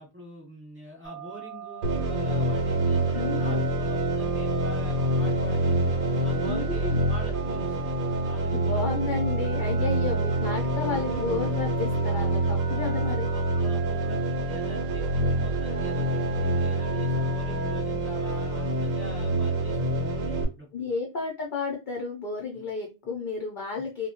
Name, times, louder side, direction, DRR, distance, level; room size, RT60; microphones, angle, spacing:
voice 1, 0.0-5.8 6.2-7.9 8.2-8.8 9.5-9.9 12.7-20.9 22.5-22.7, left 2 dB, 10° right, -4 dB, 0.9 m, -44 dB
Telephone, 1.0-17.8, right 6 dB, 60° right, 0.4 m, -42 dB
sound 1, 1.8-20.5, right 1 dB, 85° right, 1.0 m, -26 dB
voice 2, 3.1-3.7 6.4-7.0 8.5-13.3 20.7-24.1, left 4 dB, 65° left, 0 dB, 0.5 m, -32 dB
2.1 x 2.1 x 2.8 m, 0.27 s
omnidirectional pair, 1.4 m